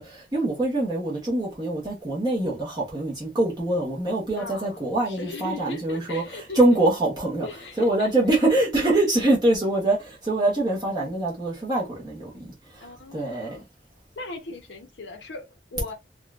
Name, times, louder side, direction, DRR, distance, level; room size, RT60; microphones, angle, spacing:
voice 1, 0.0-7.5 7.8-12.3 13.1-13.6, right 2 dB, 25° right, 0.9 m, -24 dB
voice 2, 4.4-4.8 5.1-6.6 7.4-8.1 8.4-8.5 12.8-13.6 14.2-15.9, left 3 dB, 85° left, 0.8 m, -38 dB
3.7 x 2.3 x 2.4 m
head